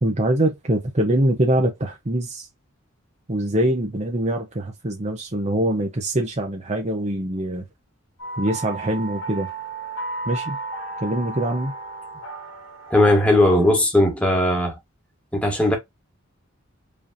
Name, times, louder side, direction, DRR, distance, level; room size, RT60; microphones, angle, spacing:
voice 1, 0.0-2.5 3.3-7.6 8.4-9.5 10.2-10.6 11.0-11.7, right 1 dB, 35° right, 1.0 m, -23 dB
sound 1, 8.2-13.7, right 2 dB, 90° left, 2.2 m, -34 dB
voice 2, 12.9-14.8 15.3-15.8, left 1 dB, 5° left, 1.7 m, -18 dB
5.2 x 3.3 x 2.6 m
head